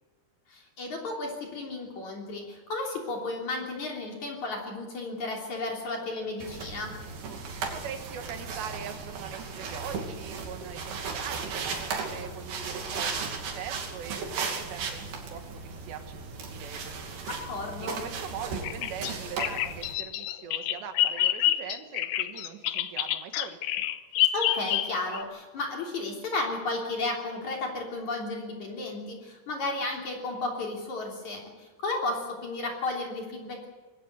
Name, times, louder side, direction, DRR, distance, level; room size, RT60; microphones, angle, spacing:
voice 1, 0.5-7.0 17.3-18.0 24.3-33.7, left 2 dB, 45° left, 0 dB, 4.4 m, -33 dB
sound 1, 6.4-19.9, right 5 dB, 70° right, 4.6 m, -36 dB
voice 2, 7.7-17.2 17.8-23.6, right 8 dB, 90° right, 7 dB, 3.9 m, -42 dB
Bird vocalization bird call bird song, 18.6-25.2, left 13 dB, 75° left, 2.6 m, -28 dB
23.0 x 16.5 x 8.3 m, 1.4 s
omnidirectional pair, 4.8 m